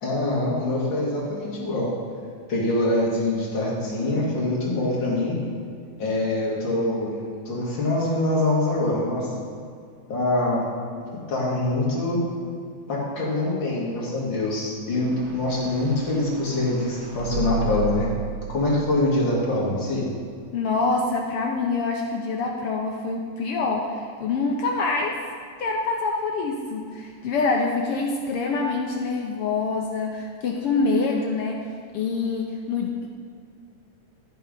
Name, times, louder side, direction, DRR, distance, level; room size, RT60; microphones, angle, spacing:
voice 1, 0.0-1.9 2.5-5.4 6.0-7.1 7.5-9.3 10.1-10.7 11.3-12.2 12.9-18.1 18.5-20.1, left 2 dB, 40° left, -5 dB, 2.7 m, -24 dB
sound 1, 14.9-20.1, right 5 dB, 80° right, 2.4 m, -34 dB
voice 2, 20.5-25.2 25.6-31.6 31.9-33.1, left 3 dB, 75° left, 1 dB, 1.3 m, -25 dB
14.0 x 4.6 x 5.2 m, 2.3 s
omnidirectional pair, 3.3 m